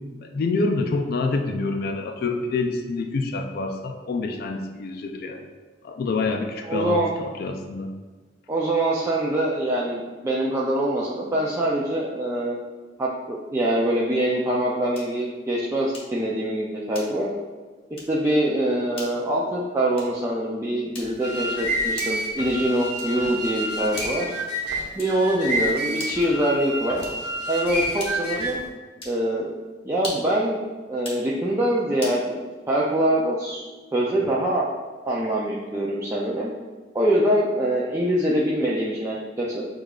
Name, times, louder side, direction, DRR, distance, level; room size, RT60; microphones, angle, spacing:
voice 1, 0.2-5.4 5.8-7.9, left 3 dB, 55° left, 4 dB, 0.3 m, -27 dB
voice 2, 6.6-7.1 8.5-12.6 13.0-17.3 18.1-24.3 25.0-27.0 27.5-28.6 29.0-29.5 29.8-30.6 30.9-33.6 33.9-34.7 35.1-36.5 36.9-39.6, right 1 dB, 15° right, -6 dB, 0.4 m, -24 dB
sound 1, 14.9-15.2 15.9-16.3 16.9-17.4 17.9-18.2 18.9-19.2 19.9-20.3 20.9-21.3 21.9-22.3 22.9-23.3 23.9-24.3 25.0-25.3 25.9-26.3 26.9-27.4 28.0-28.4 29.0-29.3 29.9-30.4 30.9-31.3 32.0-32.2, left 2 dB, 30° left, 1.0 m, -39 dB
sound 2, 21.0-28.7, equal, 60° right, 1.0 m, -29 dB
6.3 x 2.3 x 2.3 m, 1.3 s
head